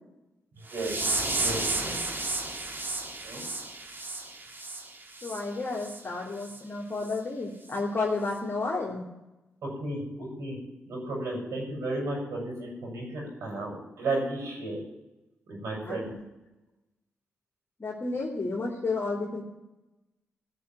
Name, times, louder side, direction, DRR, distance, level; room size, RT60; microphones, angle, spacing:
sound 1, 0.7-5.4 5.8-6.0 6.4-6.6 7.1-7.2 7.7-7.8, right 2 dB, 40° right, 3.6 m, -32 dB
voice 1, 1.3-2.0 3.2-3.4 9.6-10.6 10.9-14.8 15.5-16.1, right 2 dB, 75° right, -2 dB, 6.9 m, -33 dB
voice 2, 5.2-9.0 15.8-16.2 17.8-19.4, left 3 dB, 40° left, -4 dB, 3.1 m, -31 dB
15.0 x 6.8 x 9.9 m, 0.99 s
supercardioid pair, 45°, 5 cm